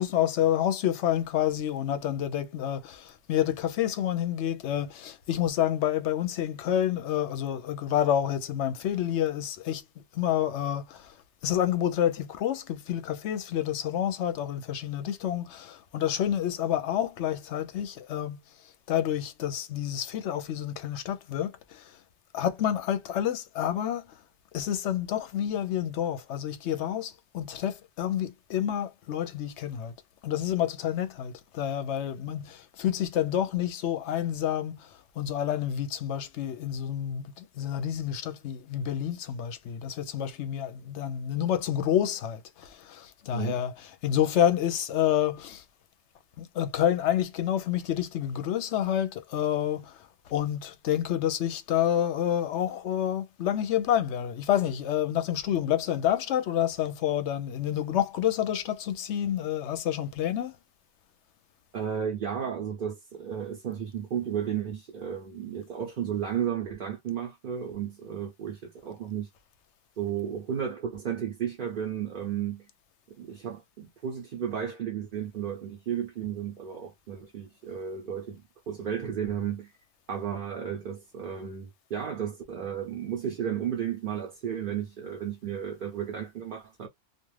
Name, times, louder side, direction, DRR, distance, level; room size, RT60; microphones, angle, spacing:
voice 1, 0.0-9.8 10.1-11.1 11.4-18.4 18.9-22.0 22.3-24.1 24.5-29.9 30.2-45.6 46.4-60.6, left 10 dB, 70° left, 0.9 m, -28 dB
voice 2, 61.7-69.3 70.0-72.7 73.1-79.7 80.1-86.9, right 8 dB, 50° right, 0.7 m, -33 dB
2.4 x 2.4 x 3.1 m
omnidirectional pair, 1.3 m